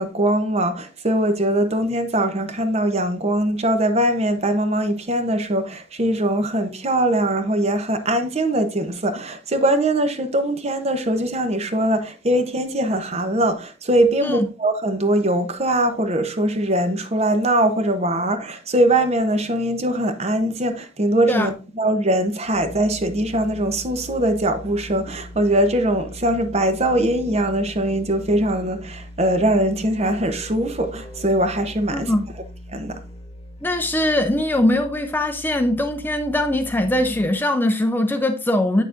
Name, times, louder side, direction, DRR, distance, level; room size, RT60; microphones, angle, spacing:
voice 1, 0.0-32.1 32.7-33.0, right 1 dB, 30° right, 0.8 m, -21 dB
Musical instrument, 22.4-37.5, equal, 30° left, 1.0 m, -40 dB
voice 2, 31.9-32.3 33.6-38.8, left 1 dB, 10° left, 0.5 m, -21 dB
8.1 x 6.5 x 2.5 m
head